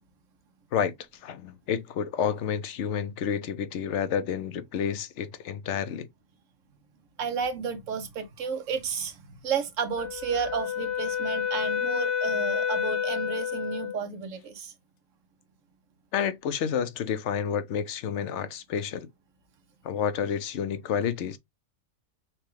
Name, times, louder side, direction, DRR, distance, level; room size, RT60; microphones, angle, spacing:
voice 1, 1.2-6.1 16.1-19.1 19.8-21.4, left 8 dB, 65° left, 0.9 m, -29 dB
voice 2, 7.2-14.7, right 6 dB, 70° right, 1.2 m, -32 dB
Wind instrument woodwind instrument, 10.0-14.0, left 8 dB, 85° left, 1.2 m, -29 dB
5.8 x 2.3 x 3.1 m
omnidirectional pair, 1.4 m